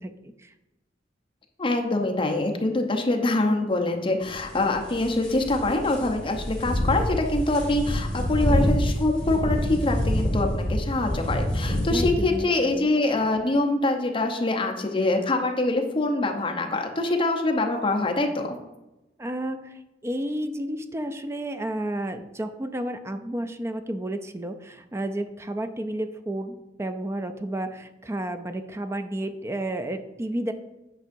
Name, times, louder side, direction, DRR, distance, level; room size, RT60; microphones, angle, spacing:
voice 1, 1.6-18.6, left 2 dB, 30° left, 2 dB, 0.8 m, -24 dB
sound 1, 4.2-12.1, left 1 dB, 5° left, 1.8 m, -27 dB
voice 2, 11.9-12.9 19.2-30.5, right 1 dB, 15° right, 8 dB, 0.4 m, -31 dB
9.1 x 5.5 x 2.6 m, 0.98 s
head